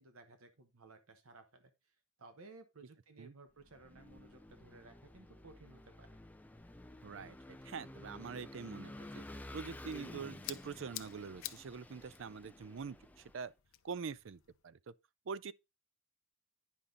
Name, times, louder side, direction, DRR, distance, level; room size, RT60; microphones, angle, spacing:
voice 1, 0.0-1.7 2.2-6.2, right 3 dB, 90° right, 1.1 m, -58 dB
Vehicle / Engine, 3.6-13.4, left 1 dB, 10° left, 0.4 m, -52 dB
voice 2, 7.0-9.2 9.5-13.0 13.3-13.5 13.8-14.9 15.3-15.5, right 5 dB, 65° right, 0.4 m, -44 dB
sound 1, 10.2-14.6, left 15 dB, 75° left, 0.6 m, -51 dB
10.0 x 5.5 x 3.8 m
head